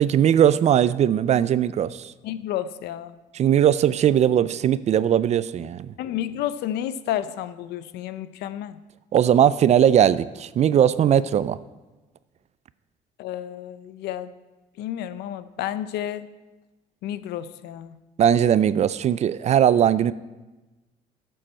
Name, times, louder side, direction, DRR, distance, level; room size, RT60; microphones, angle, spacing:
voice 1, 0.0-2.1 3.3-5.9 9.1-11.6 18.2-20.1, right 9 dB, 40° right, 17 dB, 0.4 m, -19 dB
voice 2, 2.2-3.2 6.0-8.8 13.2-14.3 14.8-16.3 17.0-18.0, left 11 dB, 80° left, 15 dB, 0.5 m, -31 dB
12.5 x 7.7 x 4.3 m, 1.1 s
cardioid pair, 110°, 17 cm